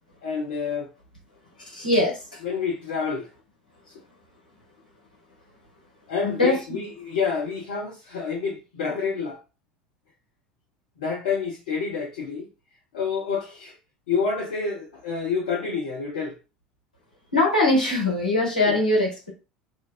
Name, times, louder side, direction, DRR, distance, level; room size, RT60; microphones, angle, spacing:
voice 1, 0.2-0.9 2.4-3.3 6.1-9.4 11.0-12.5 12.9-13.8 14.1-16.4 18.7-18.8, left 5 dB, 70° left, 0.6 m, -28 dB
voice 2, 1.6-2.4 6.2-6.8 17.3-19.3, left 2 dB, 90° left, 0.9 m, -22 dB
2.4 x 2.3 x 2.3 m
figure-of-eight pair, 70°, 4 cm